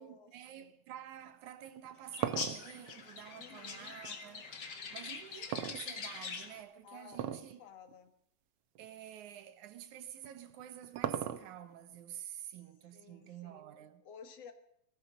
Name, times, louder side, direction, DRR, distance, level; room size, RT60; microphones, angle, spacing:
voice 1, 0.0-7.6 8.8-14.0, right 11 dB, 85° right, 2.6 m, -49 dB
sound 1, 1.7-4.1 5.5-6.4 7.1-7.5 7.9-8.0 8.7-8.9 10.2-11.7, right 10 dB, 70° right, 1.6 m, -38 dB
sound 2, 2.1-6.6, left 5 dB, 40° left, 2.0 m, -43 dB
voice 2, 3.4-4.0 6.8-8.1 12.9-13.6 14.0-14.5, left 7 dB, 60° left, 2.4 m, -54 dB
18.5 x 14.5 x 5.1 m
omnidirectional pair, 3.3 m